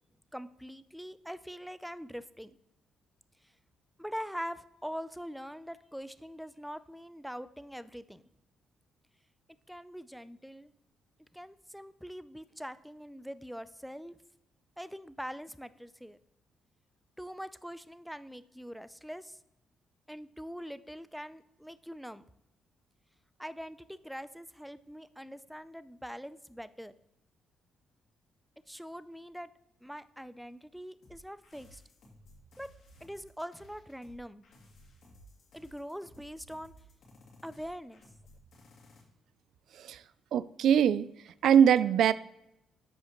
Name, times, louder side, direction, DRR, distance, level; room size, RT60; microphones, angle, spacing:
voice 1, 0.3-2.6 4.0-8.2 9.7-10.7 11.3-14.2 14.8-16.2 17.2-19.4 20.1-22.2 23.4-26.9 28.7-29.5 29.8-31.8 32.6-32.7 33.0-34.4 35.5-36.7 37.4-38.0, equal, ahead, 14 dB, 0.4 m, -43 dB
sound 1, 31.0-39.0, equal, 70° left, 2.5 m, -57 dB
voice 2, 40.3-41.1 41.4-42.1, right 8 dB, 75° right, 17 dB, 0.3 m, -22 dB
13.0 x 5.1 x 3.0 m, 0.82 s
cardioid pair, 90°, 0 cm